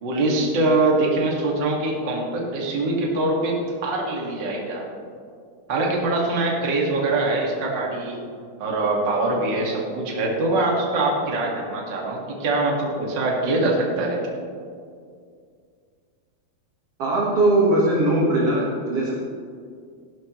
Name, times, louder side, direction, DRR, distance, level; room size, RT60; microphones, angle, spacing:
voice 1, 0.0-3.6 3.8-4.8 5.7-8.2 8.6-14.2, right 2 dB, 35° right, -2 dB, 2.0 m, -23 dB
voice 2, 17.0-19.1, right 1 dB, 55° right, -4 dB, 1.9 m, -20 dB
17.5 x 11.5 x 3.1 m, 2.2 s
omnidirectional pair, 4.5 m